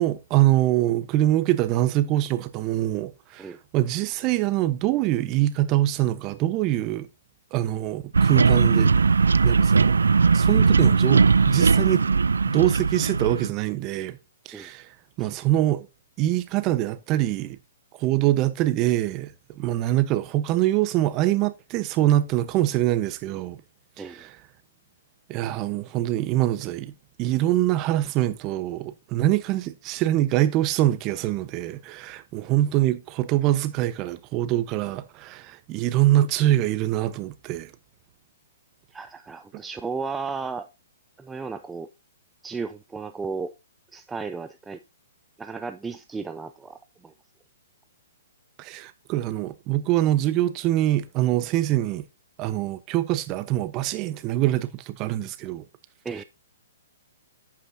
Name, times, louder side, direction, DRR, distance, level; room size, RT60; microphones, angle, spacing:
voice 1, 0.0-7.1 7.5-8.9 9.4-9.9 10.3-12.0 12.5-14.2 14.4-14.9 15.2-15.9 16.2-17.6 18.0-23.6 24.0-24.4 25.3-26.9 27.2-37.7 48.6-52.0 52.4-55.6, right 14 dB, 30° right, 1.1 m, -24 dB
sound 1, 8.1-13.5, right 5 dB, 85° right, 0.4 m, -19 dB
voice 2, 38.9-40.7 41.2-41.9 42.4-43.5 43.9-44.8 45.4-46.8 47.0-47.1 56.0-56.2, right 4 dB, 10° right, 0.5 m, -34 dB
11.0 x 8.7 x 2.8 m
hypercardioid pair, 130°, 0 cm